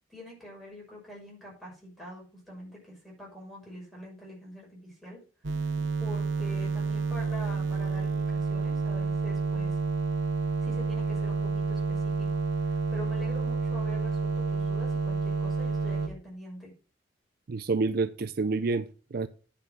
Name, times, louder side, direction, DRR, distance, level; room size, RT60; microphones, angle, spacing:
voice 1, 0.1-5.2 5.5-5.7 6.0-9.8 10.6-12.3 12.6-16.7, left 1 dB, ahead, -4 dB, 6.2 m, -45 dB
sound 1, 5.4-16.1, right 4 dB, 85° right, 1.1 m, -29 dB
voice 2, 17.5-19.3, right 3 dB, 50° right, 13 dB, 0.5 m, -28 dB
10.0 x 5.7 x 6.0 m, 0.37 s
head